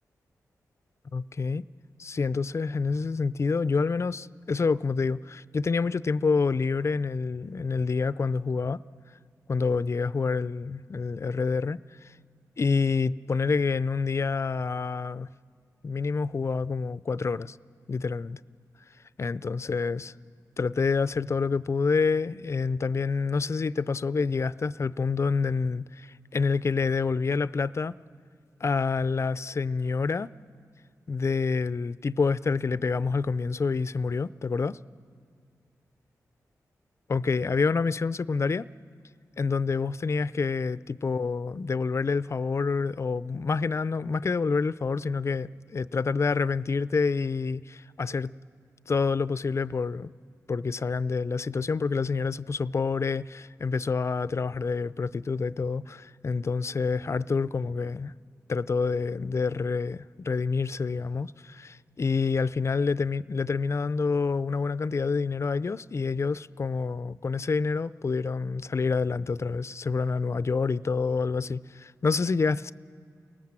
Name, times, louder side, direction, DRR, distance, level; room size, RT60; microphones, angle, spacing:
voice 1, 1.1-1.6 2.0-8.8 9.5-12.1 12.6-15.3 15.8-17.6 17.9-18.4 19.2-20.1 20.6-27.9 28.6-30.3 31.1-34.8 37.1-38.7 39.4-48.3 48.9-50.1 50.5-58.1 58.5-72.7, left 4 dB, 45° left, 0.5 m, -27 dB
29.5 x 18.5 x 7.6 m
cardioid pair, 55°, 7 cm